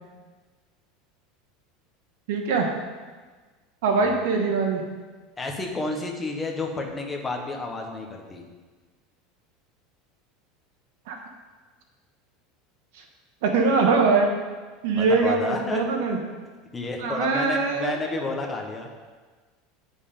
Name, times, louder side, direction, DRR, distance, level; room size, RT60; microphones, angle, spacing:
voice 1, 2.3-2.7 3.8-4.8 11.1-11.2 13.4-14.3 14.8-16.2 17.0-18.2, right 4 dB, 65° right, 2 dB, 1.3 m, -22 dB
voice 2, 5.4-8.4 14.9-15.8 16.7-18.9, left 3 dB, 10° left, 1 dB, 0.9 m, -31 dB
9.2 x 5.3 x 5.2 m, 1.4 s
supercardioid pair, 175°, 0 cm